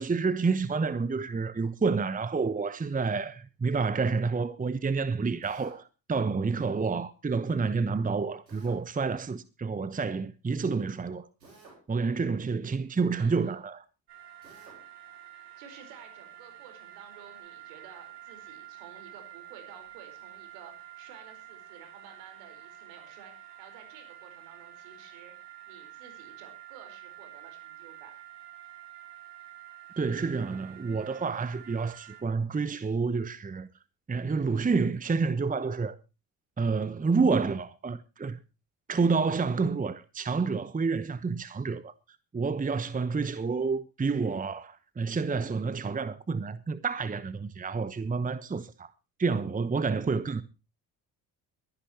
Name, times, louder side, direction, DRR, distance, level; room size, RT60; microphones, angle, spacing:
voice 1, 0.0-11.3 11.9-13.8 30.0-33.7 34.1-36.0 36.6-38.4 38.9-41.9 42.3-48.9 49.2-50.4, right 4 dB, 15° right, 1.0 m, -29 dB
Drill, 5.4-5.8 8.5-8.8 11.4-11.9 14.4-14.8, right 3 dB, 90° right, 4.6 m, -53 dB
sound 1, 14.1-32.2, right 12 dB, 55° right, 6.6 m, -49 dB
voice 2, 15.3-28.1, right 7 dB, 70° right, 4.9 m, -52 dB
23.0 x 11.0 x 3.0 m
figure-of-eight pair, 50°, 50 cm